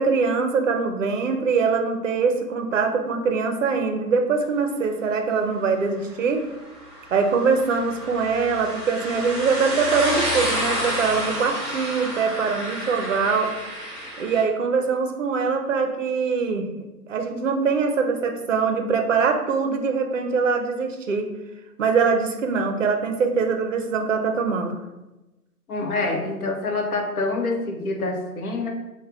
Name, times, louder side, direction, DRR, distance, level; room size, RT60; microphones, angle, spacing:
voice 1, 0.0-6.4 7.1-13.6 14.2-16.7 17.1-21.3 21.8-24.8, right 5 dB, 55° right, 5 dB, 0.5 m, -23 dB
sound 1, 6.2-14.4, equal, 10° right, 0.7 m, -30 dB
voice 2, 25.7-28.7, left 3 dB, 65° left, 2 dB, 0.8 m, -26 dB
3.2 x 2.2 x 3.5 m, 1.0 s
hypercardioid pair, 170°, 47 cm